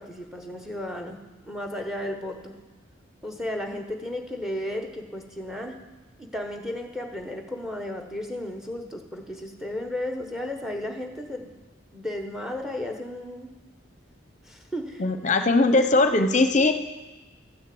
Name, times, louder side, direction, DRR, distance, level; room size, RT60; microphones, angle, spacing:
voice 1, 0.0-2.5 3.2-5.7 6.2-11.5 11.9-13.5 14.4-15.0, left 1 dB, ahead, 4 dB, 1.0 m, -34 dB
voice 2, 15.0-16.8, left 2 dB, 40° left, 8 dB, 0.7 m, -20 dB
13.0 x 6.4 x 7.7 m, 1.1 s
head